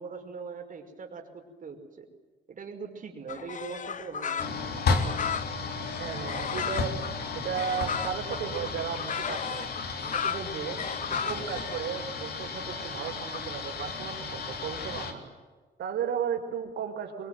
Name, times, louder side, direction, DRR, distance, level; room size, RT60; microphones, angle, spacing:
voice 1, 0.0-2.1 2.5-4.6, right 5 dB, 50° right, 4 dB, 5.5 m, -41 dB
sound 1, 3.3-13.4, left 7 dB, 45° left, 1.1 m, -35 dB
sound 2, 4.4-15.1, left 4 dB, 65° left, 3.7 m, -34 dB
voice 2, 6.0-6.9 7.3-9.7 10.1-15.2 15.8-17.3, right 7 dB, 85° right, 3 dB, 5.5 m, -35 dB
25.0 x 23.0 x 9.4 m, 1.3 s
cardioid pair, 105°, 18 cm